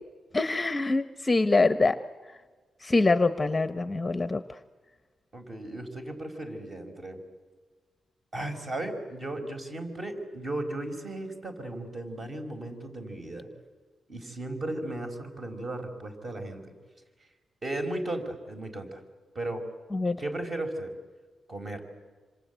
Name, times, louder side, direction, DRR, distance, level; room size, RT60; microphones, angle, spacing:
voice 1, 0.3-2.0 2.8-4.6 19.9-20.2, left 3 dB, 20° left, 11 dB, 0.9 m, -24 dB
voice 2, 5.3-7.2 8.3-13.5 14.1-16.7 17.6-19.0 19.3-19.6 20.2-20.9 21.5-21.8, right 1 dB, 35° right, 6 dB, 4.8 m, -35 dB
26.5 x 26.5 x 8.2 m, 1.4 s
wide cardioid pair, 130°, 0 cm